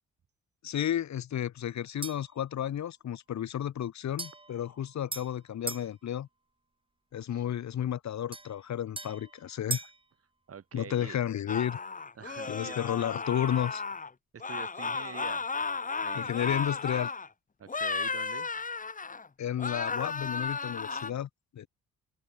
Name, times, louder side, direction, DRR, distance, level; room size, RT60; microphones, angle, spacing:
voice 1, 0.6-6.3 7.1-9.8 10.7-11.8 12.5-13.8 16.1-17.1 19.4-21.7, left 10 dB, 65° left, 4.5 m, -32 dB
sound 1, 2.0-2.4 4.2-5.9 8.3-10.0, right 2 dB, 15° right, 5.3 m, -40 dB
voice 2, 10.5-11.2 12.1-13.1 14.3-15.5 16.0-16.5 17.6-18.5, right 7 dB, 50° right, 8.0 m, -46 dB
sound 2, 11.5-14.1 14.4-17.3 17.7-19.3 19.6-21.1, left 4 dB, 25° left, 2.2 m, -34 dB
open air
cardioid pair, 90°, 30 cm